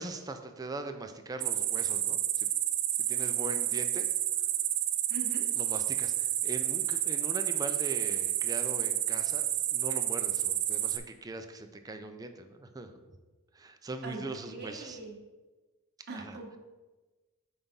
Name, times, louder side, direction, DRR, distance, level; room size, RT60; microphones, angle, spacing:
voice 1, 0.0-2.5 3.1-4.1 5.5-9.5 9.7-12.9 13.5-15.0 16.1-16.4, right 2 dB, 15° right, 6 dB, 0.4 m, -41 dB
sound 1, 1.4-11.0, right 12 dB, 90° right, 0.5 m, -30 dB
voice 2, 5.1-5.4 14.0-14.2 14.5-15.2 16.1-16.5, right 3 dB, 50° right, -1 dB, 1.2 m, -41 dB
5.6 x 3.5 x 5.2 m, 1.2 s
head